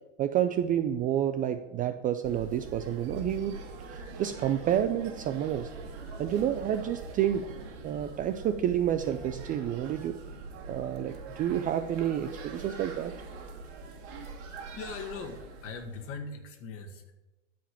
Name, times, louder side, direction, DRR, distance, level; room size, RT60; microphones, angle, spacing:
voice 1, 0.2-3.6 3.9-5.7 6.2-7.6 7.8-10.2 10.7-13.2, right 10 dB, 25° right, 10 dB, 0.4 m, -29 dB
sound 1, 2.2-16.1, right 4 dB, 55° right, 2.5 m, -43 dB
voice 2, 14.8-17.1, left 4 dB, 35° left, 6 dB, 1.9 m, -40 dB
12.5 x 5.2 x 8.5 m, 1.0 s
hypercardioid pair, 120°, 37 cm